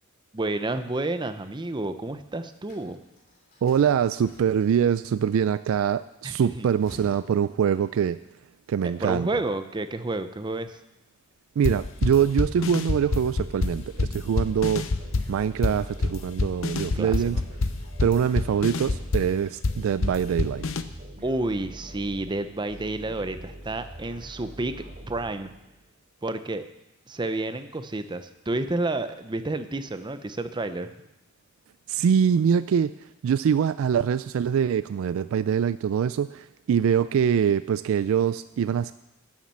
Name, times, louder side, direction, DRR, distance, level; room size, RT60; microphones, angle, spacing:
voice 1, 0.3-3.0 6.2-6.7 9.0-10.8 17.0-17.4 21.2-24.7 25.1-25.5 26.2-26.7 27.1-30.9, right 2 dB, 20° right, 10 dB, 0.6 m, -30 dB
sound 1, 2.5-5.1 6.4-8.2, equal, 45° left, 3.1 m, -50 dB
voice 2, 3.6-8.2 8.7-9.3 11.6-14.9 15.3-17.4 18.0-20.6 31.9-32.9 33.2-38.9, right 8 dB, 70° right, 14 dB, 0.3 m, -24 dB
sound 2, 11.6-20.8, left 3 dB, 65° left, 0.7 m, -27 dB
sound 3, 13.7-25.9, right 1 dB, 40° right, 2.5 m, -44 dB
11.0 x 7.3 x 7.4 m, 0.91 s
head